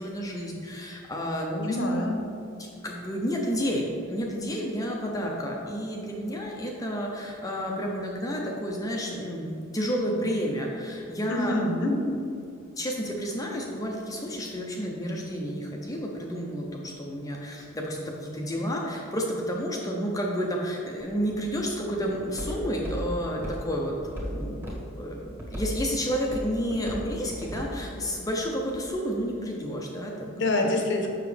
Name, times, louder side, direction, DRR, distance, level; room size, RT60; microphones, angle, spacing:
voice 1, 0.0-1.8 2.8-11.6 12.8-24.6 25.0-30.3, equal, 15° left, -1 dB, 0.6 m, -31 dB
voice 2, 1.6-2.2 11.3-11.9 30.4-31.1, left 1 dB, 60° left, 2 dB, 0.9 m, -26 dB
Walk footsteps, 21.0-28.9, equal, 10° right, 1.4 m, -38 dB
6.9 x 6.0 x 3.3 m, 2.6 s
head